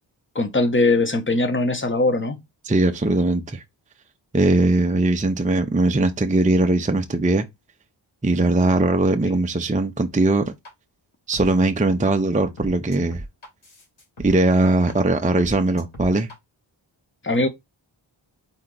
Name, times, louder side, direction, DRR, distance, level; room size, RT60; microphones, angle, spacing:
voice 1, 0.3-2.4 17.2-17.5, left 2 dB, 25° left, 0.9 m, -20 dB
voice 2, 2.6-3.6 4.3-7.4 8.2-10.5 11.3-13.2 14.2-16.3, right 2 dB, 15° right, 0.5 m, -20 dB
sound 1, 10.6-10.7 11.3-11.5 12.0-12.1 12.6-14.3 14.9-15.0 15.4-16.3, right 1 dB, 85° left, 2.3 m, -38 dB
4.3 x 2.8 x 3.8 m
wide cardioid pair, 60°, 48 cm